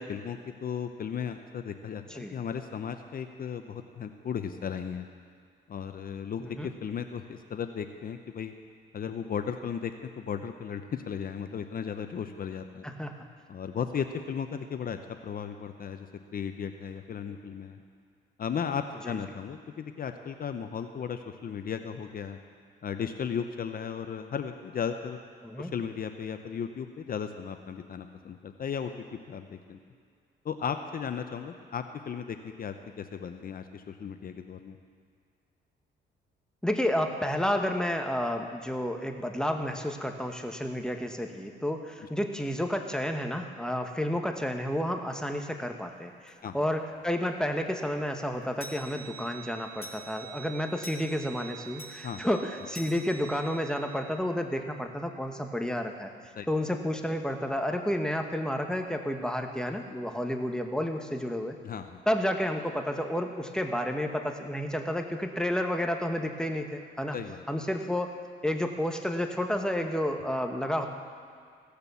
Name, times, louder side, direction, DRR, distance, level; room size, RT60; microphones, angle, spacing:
voice 1, 0.0-5.1 5.7-8.5 8.9-12.9 13.5-15.0 15.2-16.1 16.3-17.8 18.4-22.4 22.8-25.2 25.6-28.9 29.3-29.8 30.4-34.8 42.0-42.1 46.4-46.5 52.0-52.2 56.4-56.5 61.6-62.0 67.1-67.4, left 7 dB, 45° left, 7 dB, 0.7 m, -35 dB
voice 2, 12.8-13.2 19.0-19.2 25.4-25.7 36.6-56.1 56.5-61.6 62.1-67.2 67.5-68.1 68.4-70.9, equal, 5° left, 4 dB, 1.2 m, -31 dB
sound 1, 46.3-46.4 46.9-47.0 47.3-47.4 47.7-54.2, right 4 dB, 30° left, 1.8 m, -46 dB
16.5 x 6.8 x 6.9 m, 2.2 s
cardioid pair, 90°, 20 cm